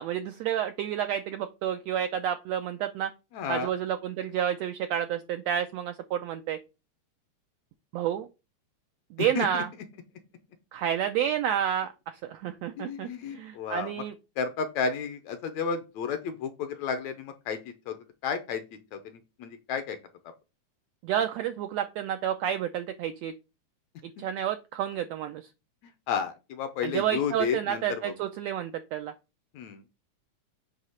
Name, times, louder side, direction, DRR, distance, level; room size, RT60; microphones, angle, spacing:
voice 1, 0.0-3.1 3.5-6.6 7.9-8.3 9.1-9.7 10.7-14.1 21.0-23.3 24.2-25.5 26.8-29.1, right 10 dB, 90° right, 8 dB, 1.5 m, -30 dB
voice 2, 3.3-3.7 9.2-9.6 12.8-14.0 14.4-18.0 18.2-18.6 18.9-20.0 25.8-28.1 29.5-29.8, left 6 dB, 70° left, 8 dB, 1.8 m, -32 dB
7.9 x 2.9 x 5.6 m, 0.28 s
omnidirectional pair, 3.6 m